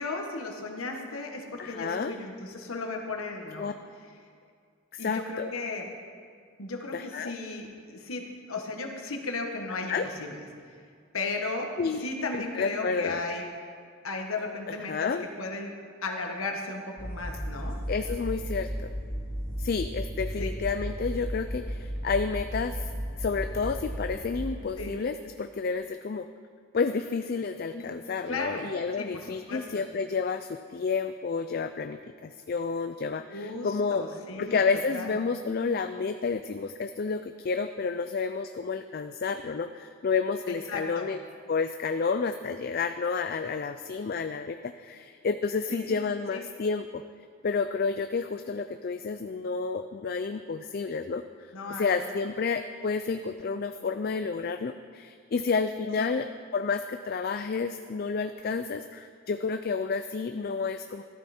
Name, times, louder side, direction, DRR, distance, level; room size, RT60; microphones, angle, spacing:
voice 1, 0.0-3.7 5.0-5.9 6.6-10.4 11.1-11.7 12.0-13.5 14.0-15.7 16.0-17.8 20.4-20.5 24.8-24.9 27.7-27.9 28.3-28.7 29.0-29.8 33.3-34.6 34.9-35.2 40.7-41.1 45.7-46.0 46.3-46.4 51.5-51.9 56.0-56.1, left 3 dB, 85° left, 2 dB, 1.6 m, -35 dB
voice 2, 1.6-2.1 3.6-3.7 4.9-5.5 6.9-7.3 9.9-10.0 11.8-12.1 12.3-13.2 14.9-15.2 17.9-18.9 19.6-26.3 26.7-34.1 34.4-41.2 41.5-47.0 47.4-51.2 51.8-56.3 56.5-61.0, left 5 dB, 45° left, 9 dB, 0.4 m, -30 dB
sound 1, 17.0-24.7, equal, 25° left, 3.1 m, -34 dB
14.0 x 12.5 x 4.4 m, 2.2 s
head